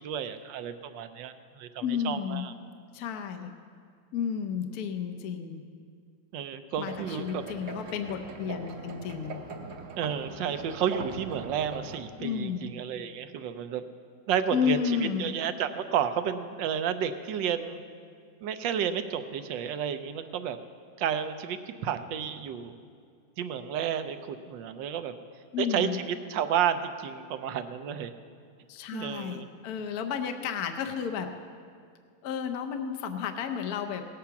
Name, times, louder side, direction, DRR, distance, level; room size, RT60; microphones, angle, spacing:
voice 1, 0.0-2.5 6.3-7.4 10.0-13.8 14.3-14.8 15.2-17.8 18.4-20.6 21.0-22.8 23.4-25.1 25.6-26.0 26.3-28.1 28.9-29.5, right 8 dB, 80° right, 10 dB, 1.4 m, -31 dB
voice 2, 1.8-2.4 2.9-3.5 4.1-5.6 6.8-9.4 12.2-12.7 14.5-15.3 25.5-26.0 28.7-31.3 32.2-34.0, left 7 dB, 65° left, 6 dB, 1.1 m, -32 dB
sound 1, 6.8-12.0, right 4 dB, 50° right, 1.0 m, -41 dB
18.0 x 8.5 x 5.8 m, 2.2 s
omnidirectional pair, 2.0 m